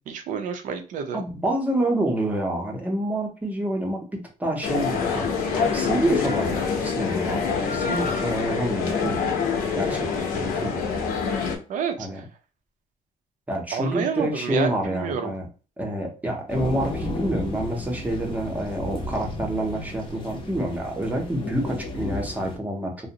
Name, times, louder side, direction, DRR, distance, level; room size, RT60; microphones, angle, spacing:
voice 1, 0.1-1.2 11.7-12.2 13.7-15.3, right 6 dB, 65° right, 0.5 m, -29 dB
voice 2, 1.1-10.9 12.0-12.2 13.5-15.5 15.8-23.1, right 1 dB, 10° right, 0.6 m, -28 dB
sound 1, 4.6-11.6, left 5 dB, 90° left, 0.6 m, -26 dB
sound 2, 16.5-22.6, left 2 dB, 35° left, 0.5 m, -34 dB
2.6 x 2.0 x 2.7 m
cardioid pair, 165°, 14 cm